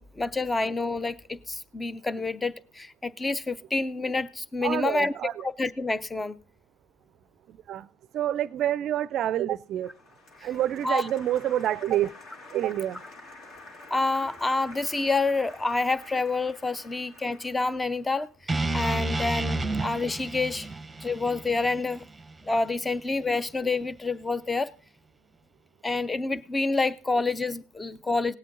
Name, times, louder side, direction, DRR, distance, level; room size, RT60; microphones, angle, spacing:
voice 1, 0.0-5.1 5.6-6.4 10.8-11.0 13.9-18.3 18.7-20.7 21.0-22.0 22.5-24.7 25.8-28.3, left 3 dB, 15° left, 0.6 m, -28 dB
voice 2, 4.6-5.5 7.5-9.9 10.4-12.1 12.5-13.0, right 12 dB, 50° right, 0.5 m, -28 dB
Applause, 9.8-18.8, left 2 dB, 55° left, 2.9 m, -49 dB
sound 1, 18.5-22.6, right 2 dB, 10° right, 1.0 m, -31 dB
18.0 x 8.2 x 3.9 m
supercardioid pair, 100°, 0 cm